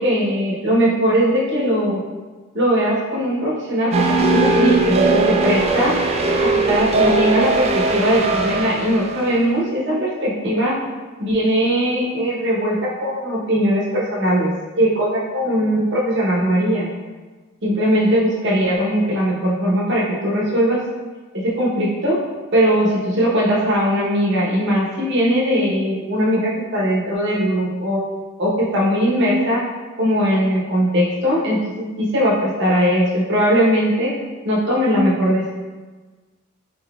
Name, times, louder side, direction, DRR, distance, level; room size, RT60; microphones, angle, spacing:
voice 1, 0.0-2.0 2.5-6.0 6.4-10.8 11.2-14.5 14.8-16.9 17.6-20.8 21.3-22.2 22.5-28.0 28.4-29.6 30.0-31.6 32.0-34.1 34.4-35.5, equal, 55° right, -5 dB, 0.8 m, -19 dB
sound 1, 3.9-9.2, right 3 dB, 30° right, 0.3 m, -19 dB
3.9 x 3.7 x 2.3 m, 1.3 s
head